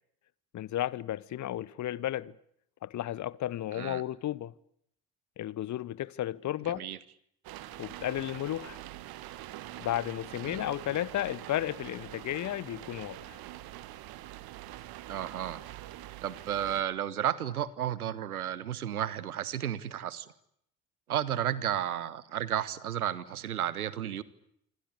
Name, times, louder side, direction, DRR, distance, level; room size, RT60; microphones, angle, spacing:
voice 1, 0.5-2.3 2.8-4.5 5.4-6.9 7.8-8.8 9.8-13.4, left 13 dB, 40° left, 1.1 m, -33 dB
voice 2, 6.6-7.0 10.5-10.6 15.1-15.6 16.2-20.3 21.1-24.2, right 10 dB, 80° right, 1.5 m, -33 dB
sound 1, 7.4-16.8, right 15 dB, 55° right, 2.1 m, -45 dB
27.0 x 25.5 x 8.5 m
figure-of-eight pair, 55°, 44 cm